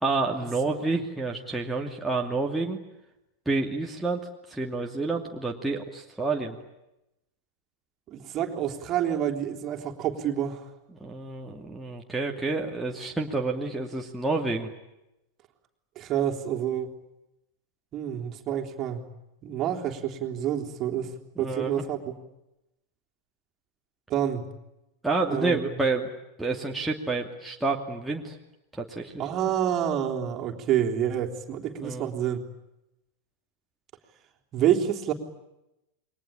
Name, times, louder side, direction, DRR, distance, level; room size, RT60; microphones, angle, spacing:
voice 1, 0.0-2.8 3.5-4.2 4.5-6.6 11.0-14.7 21.4-21.7 25.0-26.1 26.4-28.4 28.7-29.2 31.8-32.1, right 3 dB, 5° right, -1 dB, 2.6 m, -29 dB
voice 2, 8.1-10.7 16.0-16.9 17.9-19.0 19.4-22.0 24.1-24.5 25.3-25.8 29.2-32.4 34.5-35.1, right 10 dB, 35° right, 3 dB, 3.5 m, -28 dB
29.0 x 23.5 x 8.7 m, 0.90 s
figure-of-eight pair, 90°, 0 cm